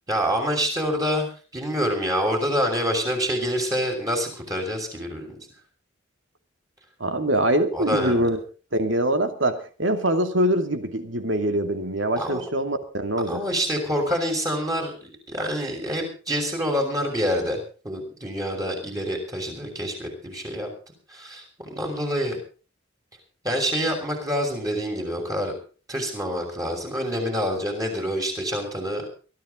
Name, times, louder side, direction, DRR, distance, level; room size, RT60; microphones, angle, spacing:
voice 1, 0.1-5.4 7.7-8.3 12.2-12.4 13.3-17.6 17.8-20.7 21.1-22.4 23.4-25.5 25.9-29.0, equal, 20° right, 1 dB, 6.1 m, -26 dB
voice 2, 7.0-8.4 8.7-13.4, right 1 dB, 75° right, 7 dB, 2.5 m, -24 dB
23.0 x 13.5 x 3.8 m, 0.36 s
head